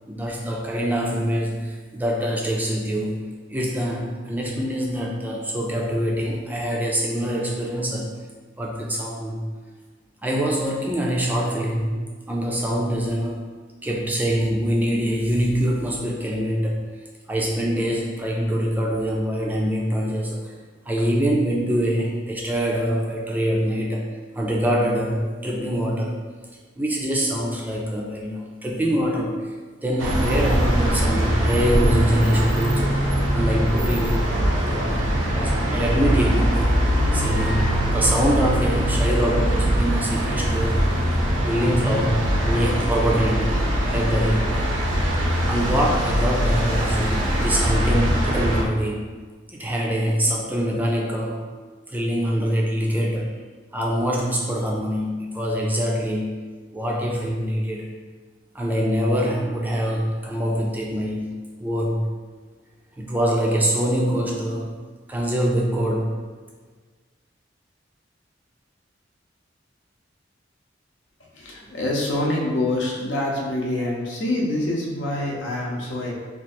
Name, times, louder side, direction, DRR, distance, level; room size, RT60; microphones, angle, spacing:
voice 1, 0.1-3.2 3.5-8.1 8.6-9.5 10.2-13.5 13.8-16.8 17.3-20.5 20.9-26.1 26.8-29.5 29.8-33.0 33.3-36.9 37.1-40.8 41.4-44.6 45.5-49.2 49.5-51.5 51.9-53.3 53.7-56.4 56.7-57.9 58.5-62.1 63.0-64.8 65.1-66.2, equal, 10° right, -2 dB, 0.4 m, -24 dB
sound 1, 30.0-48.6, equal, 85° right, 0.6 m, -22 dB
voice 2, 71.3-76.1, left 1 dB, 70° left, -2 dB, 0.8 m, -25 dB
3.0 x 2.4 x 4.2 m, 1.4 s
head